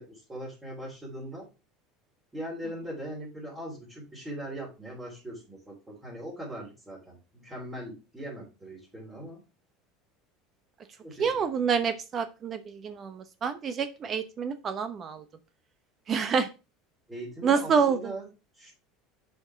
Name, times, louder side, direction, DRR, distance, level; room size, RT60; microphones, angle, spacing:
voice 1, 0.0-1.5 2.3-9.4 11.0-11.6 17.1-18.3 18.6-18.7, right 1 dB, 10° right, -6 dB, 3.7 m, -40 dB
voice 2, 11.2-15.2 16.1-16.5 17.4-18.1, right 6 dB, 35° right, 11 dB, 0.9 m, -27 dB
6.3 x 5.4 x 4.7 m, 0.29 s
supercardioid pair, 110°, 0 cm